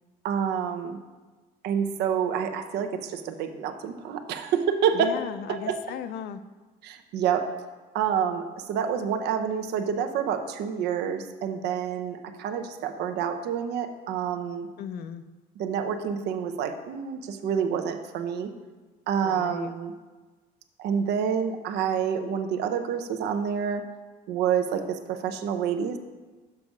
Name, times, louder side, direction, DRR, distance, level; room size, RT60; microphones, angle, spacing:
voice 1, 0.2-1.0 1.6-5.1 5.5-5.8 6.8-7.5 7.9-14.7 15.6-18.5 19.1-19.9 20.8-23.8 24.3-26.0, right 7 dB, 80° right, 7 dB, 0.7 m, -28 dB
voice 2, 4.9-6.4 14.8-15.2 19.2-19.7, left 9 dB, 70° left, 12 dB, 0.5 m, -36 dB
6.8 x 5.3 x 4.7 m, 1.3 s
cardioid pair, 110°, 17 cm